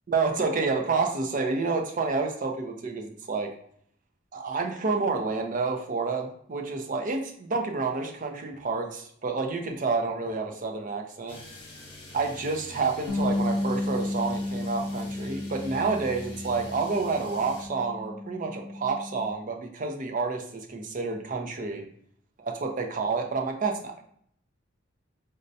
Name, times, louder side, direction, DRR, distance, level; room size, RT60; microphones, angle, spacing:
voice 1, 0.1-3.5 4.3-11.4 12.1-21.9 22.4-24.0, right 4 dB, 40° right, 3 dB, 0.5 m, -29 dB
sound 1, 11.3-17.7, left 1 dB, 25° left, 1.0 m, -45 dB
Bass guitar, 13.1-19.3, left 2 dB, 65° left, 0.4 m, -33 dB
5.2 x 2.1 x 2.6 m, 0.65 s
head